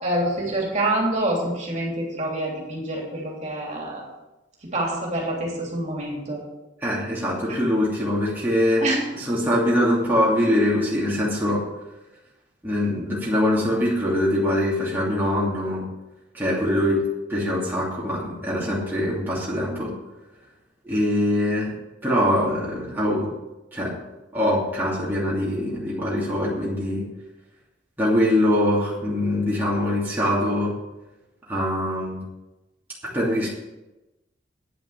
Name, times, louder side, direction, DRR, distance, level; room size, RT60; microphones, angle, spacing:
voice 1, 0.0-4.0 4.7-6.4 8.8-9.0, right 1 dB, 40° right, -2 dB, 3.1 m, -26 dB
voice 2, 6.8-8.8 9.1-11.6 12.6-15.9 16.3-17.0 17.3-19.9 20.8-21.8 22.0-23.3 23.7-24.0 24.3-27.0 28.0-30.7 31.5-32.2 33.1-33.5, left 1 dB, 10° right, -7 dB, 2.7 m, -23 dB
9.7 x 7.9 x 7.2 m, 1.0 s
head